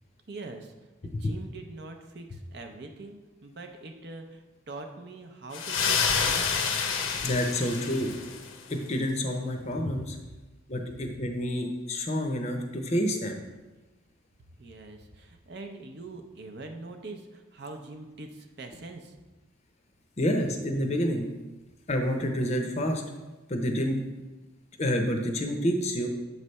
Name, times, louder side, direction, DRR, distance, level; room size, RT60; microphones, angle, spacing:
voice 1, 0.3-0.7 1.0-3.2 3.4-6.8 14.6-19.2, right 2 dB, 55° right, 5 dB, 0.6 m, -43 dB
sound 1, 5.5-8.6, left 6 dB, 80° left, 0.8 m, -28 dB
voice 2, 7.2-8.1 8.7-10.2 10.7-13.4 20.2-21.3 21.9-23.0 23.5-24.0 24.8-26.1, equal, 35° left, 4 dB, 0.6 m, -28 dB
7.3 x 3.2 x 5.3 m, 1.2 s
head